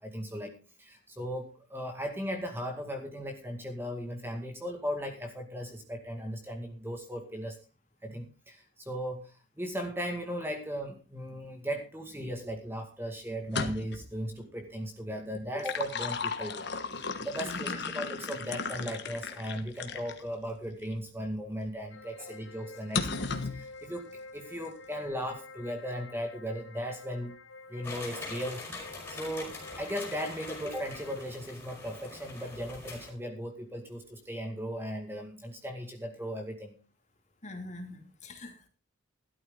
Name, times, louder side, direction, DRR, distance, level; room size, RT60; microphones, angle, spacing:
voice 1, 0.0-7.6 8.0-23.1 23.4-27.3 27.7-28.8 29.1-36.8, equal, 10° right, 3 dB, 2.1 m, -37 dB
sound 1, 13.4-14.1 15.3-20.2 20.8-20.9 22.9-23.6, left 4 dB, 55° left, 1.4 m, -35 dB
voice 2, 17.4-17.9 22.2-22.3 37.4-38.7, left 2 dB, 35° left, 3 dB, 2.8 m, -43 dB
sound 2, 21.9-31.2, left 3 dB, 85° left, 4.5 m, -49 dB
sound 3, 27.8-33.1, left 3 dB, 10° left, 5.4 m, -44 dB
13.5 x 13.0 x 3.9 m, 0.33 s
head